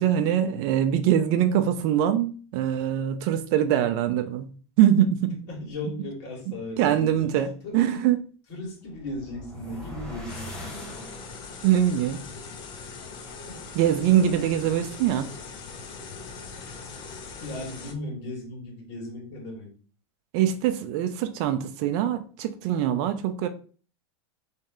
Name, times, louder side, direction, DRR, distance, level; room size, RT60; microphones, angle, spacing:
voice 1, 0.0-4.5 4.8-5.4 6.8-8.2 11.6-12.2 13.7-15.3 20.3-23.5, right 10 dB, 45° right, 0.4 m, -23 dB
voice 2, 5.5-7.3 7.6-8.0 8.5-11.1 13.4-13.6 14.4-14.5 16.5-16.7 17.4-19.7, left 1 dB, 50° left, 1.8 m, -37 dB
sound 1, 8.8-11.7, equal, 5° left, 0.9 m, -41 dB
sound 2, 10.3-17.9, left 5 dB, 35° left, 0.6 m, -41 dB
3.1 x 2.8 x 3.6 m
supercardioid pair, 150°, 15 cm